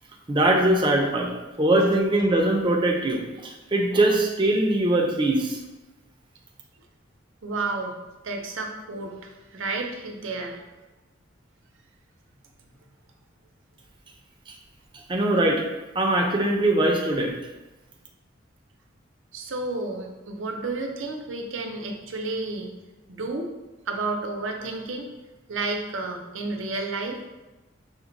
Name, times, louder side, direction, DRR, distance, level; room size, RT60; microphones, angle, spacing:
voice 1, 0.3-1.3 1.6-5.6 15.1-15.6 15.9-17.3, right 1 dB, 25° right, 1 dB, 0.5 m, -21 dB
voice 2, 7.4-7.9 8.2-10.6 19.3-22.7 23.1-23.5 23.9-25.1 25.5-27.2, right 3 dB, 85° right, 3 dB, 0.6 m, -31 dB
5.9 x 2.2 x 3.9 m, 1.1 s
head